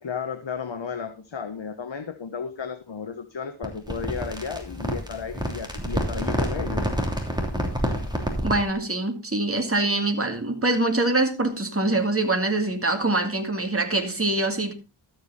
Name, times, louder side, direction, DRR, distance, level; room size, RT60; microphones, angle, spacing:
voice 1, 0.0-6.9, left 6 dB, 65° left, 8 dB, 1.1 m, -33 dB
sound 1, 3.6-8.7, equal, 10° right, 3.0 m, -28 dB
voice 2, 8.4-14.7, right 2 dB, 30° right, 3 dB, 2.4 m, -24 dB
13.0 x 7.9 x 4.1 m, 0.32 s
wide cardioid pair, 45°, 48 cm